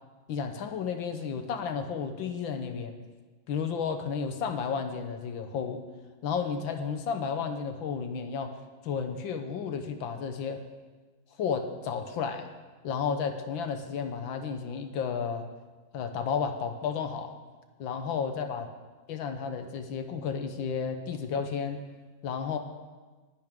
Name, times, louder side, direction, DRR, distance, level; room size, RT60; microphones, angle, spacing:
voice 1, 0.3-3.0 3.5-5.8 6.2-10.6 11.4-12.5 12.8-15.5 15.9-17.3 17.8-18.7 19.1-21.8 22.2-22.6, left 6 dB, 75° left, 7 dB, 1.7 m, -32 dB
18.5 x 10.5 x 3.7 m, 1.3 s
omnidirectional pair, 2.2 m